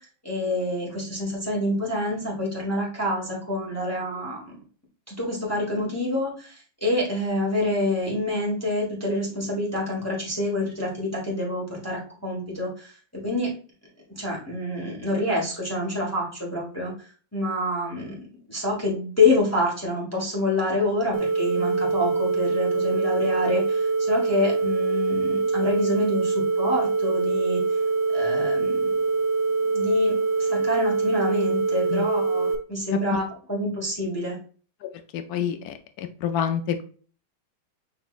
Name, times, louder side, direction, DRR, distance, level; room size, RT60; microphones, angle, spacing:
voice 1, 0.2-4.6 5.1-13.5 14.1-16.9 17.3-27.6 28.1-28.9 29.6-34.4, left 2 dB, 10° left, -4 dB, 1.1 m, -27 dB
sound 1, 21.1-32.6, right 4 dB, 80° right, 0.7 m, -24 dB
voice 2, 35.1-36.8, left 9 dB, 70° left, 8 dB, 0.9 m, -28 dB
6.3 x 3.2 x 2.4 m, 0.41 s
omnidirectional pair, 2.1 m